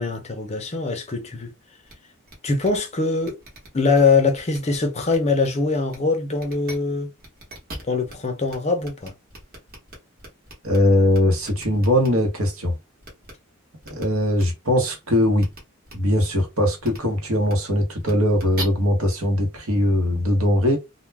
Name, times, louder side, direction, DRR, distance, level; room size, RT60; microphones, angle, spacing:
voice 1, 0.0-1.5 2.4-3.4 3.7-7.1 7.9-9.1, left 4 dB, 30° left, 0.5 m, -22 dB
sound 1, 1.9-2.0 2.3-2.4 2.6-2.8 3.2-4.0 4.3-4.8 5.1-5.5 5.9-6.0 6.4-6.8 7.2-8.1 8.5-8.6 8.8-10.8 11.1-12.1 13.0-13.3 13.8-14.0 14.3-14.4 15.4-15.6 15.8-15.9 16.8-17.0 17.4-17.5 18.0-18.6, right 2 dB, 40° right, 1.1 m, -39 dB
voice 2, 10.6-12.8 13.9-15.5 15.9-20.8, left 1 dB, 70° right, 1.0 m, -20 dB
2.2 x 2.1 x 3.3 m
head